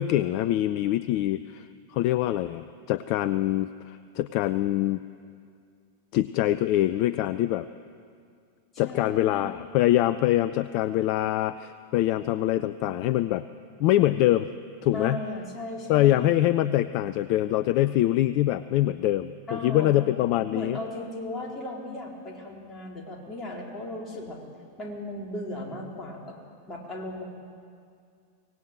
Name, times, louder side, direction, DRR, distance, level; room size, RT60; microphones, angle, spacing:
voice 1, 0.0-5.0 6.1-7.7 8.8-13.5 13.8-14.5 14.8-15.2 15.9-20.8, left 14 dB, 45° left, 15 dB, 0.5 m, -24 dB
voice 2, 8.8-9.6 14.9-16.3 19.5-20.0 20.5-24.4 24.8-26.3 26.7-27.2, left 1 dB, 20° left, -1 dB, 4.3 m, -36 dB
24.5 x 18.5 x 7.6 m, 2.3 s
figure-of-eight pair, 90°, 0 cm